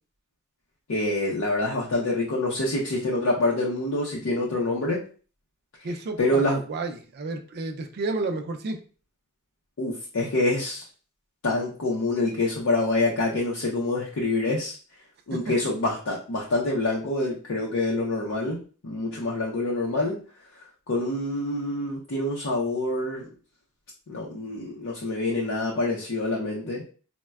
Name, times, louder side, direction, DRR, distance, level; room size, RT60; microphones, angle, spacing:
voice 1, 0.9-5.0 6.2-6.6 9.8-10.8 11.4-14.8 15.3-20.2 20.9-23.3 24.1-26.8, left 2 dB, 60° left, -3 dB, 0.6 m, -26 dB
voice 2, 5.8-8.8 15.5-15.6, right 3 dB, 45° right, 5 dB, 0.4 m, -31 dB
4.1 x 2.1 x 2.3 m, 0.39 s
head